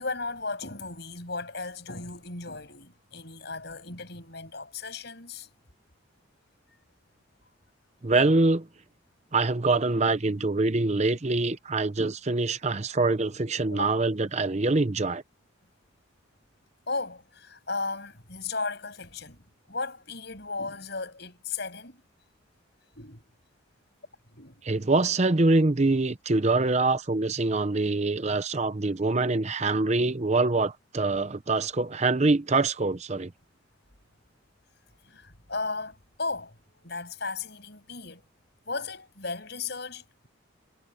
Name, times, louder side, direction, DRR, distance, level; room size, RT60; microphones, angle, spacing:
voice 1, 0.0-5.5 13.7-13.9 16.9-19.4 19.7-22.0 23.0-23.2 24.3-24.6 35.0-38.2 38.7-40.3, left 3 dB, 55° left, 7.1 m, -35 dB
voice 2, 8.0-8.7 9.3-15.2 24.6-33.3, right 3 dB, 35° right, 0.7 m, -24 dB
head